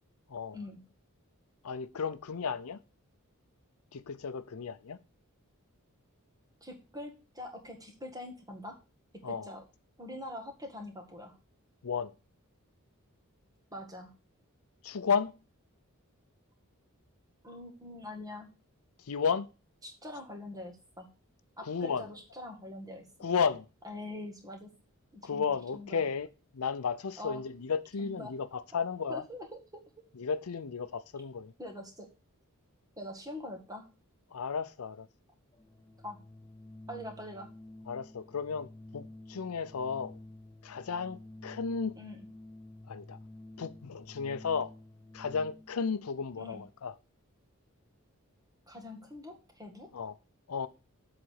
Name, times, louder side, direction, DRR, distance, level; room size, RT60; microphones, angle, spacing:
voice 1, 0.3-0.7 1.6-2.8 3.9-5.0 9.2-9.5 11.8-12.1 14.8-15.4 19.0-19.5 21.6-22.1 23.2-23.7 25.2-26.3 26.5-29.3 30.1-31.5 34.3-35.1 37.8-38.7 38.9-40.2 40.6-42.0 42.9-43.2 43.6-44.7 45.1-47.0 49.9-50.2 50.5-50.7, left 5 dB, 85° left, 0.6 m, -33 dB
voice 2, 6.6-8.8 9.2-9.6 10.0-11.3 13.7-14.1 17.4-18.5 19.8-21.1 21.6-23.1 23.8-24.7 25.3-26.0 27.2-27.4 28.0-28.3 29.1-29.5 29.7-29.8 31.6-32.1 33.0-33.8 36.0-36.2 36.9-37.5 42.0-42.2 46.4-46.6 48.7-49.9, left 1 dB, 15° right, 1.8 m, -44 dB
Organ, 35.5-45.8, left 1 dB, 20° left, 0.4 m, -51 dB
7.6 x 4.1 x 6.4 m
head